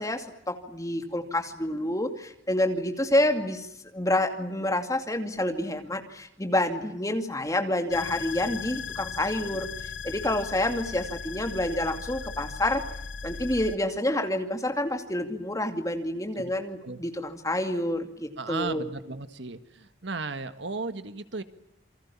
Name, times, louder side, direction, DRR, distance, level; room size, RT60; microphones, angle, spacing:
voice 1, 0.0-3.7 3.9-12.8 13.2-18.9, left 1 dB, 15° left, 6 dB, 2.5 m, -28 dB
sound 1, 7.9-13.8, left 5 dB, 70° left, 1.0 m, -37 dB
voice 2, 18.4-21.4, right 3 dB, 65° right, 10 dB, 1.8 m, -35 dB
28.5 x 23.0 x 7.3 m, 0.80 s
head